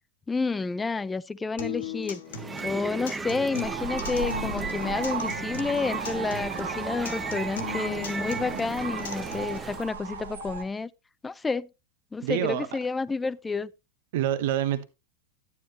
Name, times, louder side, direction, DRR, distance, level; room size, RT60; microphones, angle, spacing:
voice 1, 0.3-2.2 2.6-10.9 11.2-11.7 12.1-13.7, left 4 dB, 15° left, 0.6 m, -30 dB
Acoustic guitar, 1.6-9.6, left 6 dB, 80° left, 1.6 m, -39 dB
sound 1, 2.3-9.9, right 4 dB, 15° right, 0.8 m, -36 dB
sound 2, 3.6-10.6, right 5 dB, 90° right, 1.8 m, -36 dB
voice 2, 12.2-12.7 14.1-14.8, right 11 dB, 70° right, 1.1 m, -26 dB
11.0 x 9.6 x 3.0 m
hypercardioid pair, 100°, 0 cm